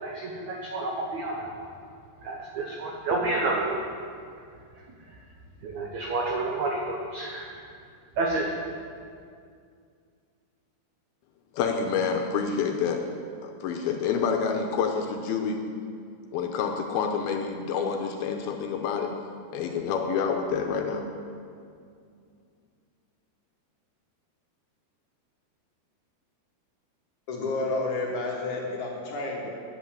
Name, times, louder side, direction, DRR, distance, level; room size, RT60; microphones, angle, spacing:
voice 1, 0.0-1.7 2.2-3.8 5.1-5.2 5.6-7.6 8.2-8.5, right 2 dB, 90° right, -1 dB, 1.5 m, -30 dB
voice 2, 11.5-13.0 13.4-15.6 16.3-19.1 19.5-21.0, left 6 dB, 80° left, 3 dB, 2.4 m, -28 dB
voice 3, 27.3-29.5, left 2 dB, 65° left, -1 dB, 2.1 m, -30 dB
10.5 x 8.0 x 7.1 m, 2.3 s
omnidirectional pair, 4.8 m